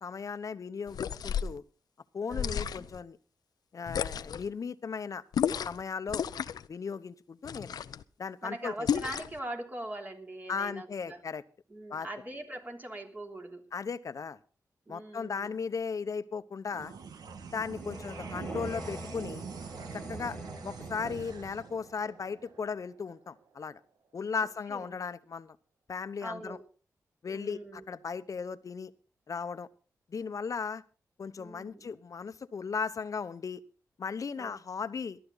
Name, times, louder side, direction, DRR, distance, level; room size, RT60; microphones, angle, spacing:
voice 1, 0.0-1.6 2.1-3.2 3.7-5.2 5.6-6.2 6.7-7.8 8.2-8.9 10.5-11.4 11.9-12.1 13.7-14.4 14.9-16.9 17.5-19.5 19.9-20.4 20.6-23.8 24.1-25.6 25.9-26.6 27.2-28.9 29.3-29.7 30.1-30.8 31.2-33.6 34.0-35.2, left 5 dB, 55° left, 13 dB, 0.9 m, -36 dB
sound 1, 0.9-1.6 2.3-3.0 3.9-4.5 5.3-5.8 6.1-6.7 7.4-8.0 8.9-9.4, left 8 dB, 85° left, 0.6 m, -32 dB
voice 2, 2.3-2.9 8.4-11.2 11.7-13.6 14.9-15.6 17.8-18.2 20.1-20.7 24.7-24.9 26.2-26.6 27.3-27.8 31.4-31.9 34.4-34.5, right 1 dB, 30° right, 2 dB, 3.4 m, -42 dB
sound 2, 16.7-23.4, right 6 dB, 85° right, 1.5 m, -44 dB
sound 3, 17.2-21.8, left 1 dB, 15° left, 2.0 m, -46 dB
19.0 x 12.5 x 4.0 m, 0.38 s
cardioid pair, 75°, 7 cm